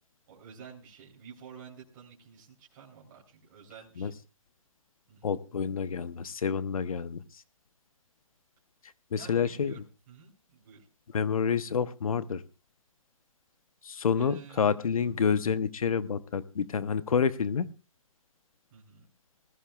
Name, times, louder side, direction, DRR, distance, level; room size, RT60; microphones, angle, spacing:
voice 1, 0.3-4.2 5.1-5.4 9.2-10.9 14.1-15.2 18.7-19.1, right 7 dB, 35° right, -4 dB, 3.5 m, -51 dB
voice 2, 5.2-7.2 9.1-9.7 11.1-12.4 13.8-17.7, left 6 dB, 85° left, 14 dB, 0.9 m, -28 dB
20.0 x 14.5 x 2.4 m, 0.33 s
hypercardioid pair, 160°, 18 cm